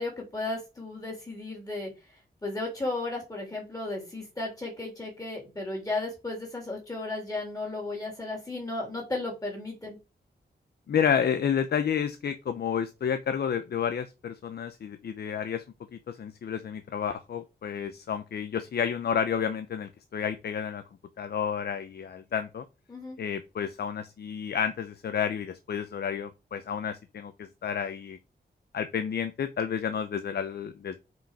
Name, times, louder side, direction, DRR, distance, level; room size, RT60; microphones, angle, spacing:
voice 1, 0.0-1.9 2.4-10.0 22.9-23.2, left 2 dB, 20° left, -1 dB, 3.5 m, -34 dB
voice 2, 10.9-15.6 15.9-20.8 21.2-22.6 23.2-28.2 28.7-31.0, left 7 dB, 65° left, 10 dB, 0.7 m, -30 dB
6.2 x 5.1 x 4.9 m, 0.28 s
wide cardioid pair, 165°, 18 cm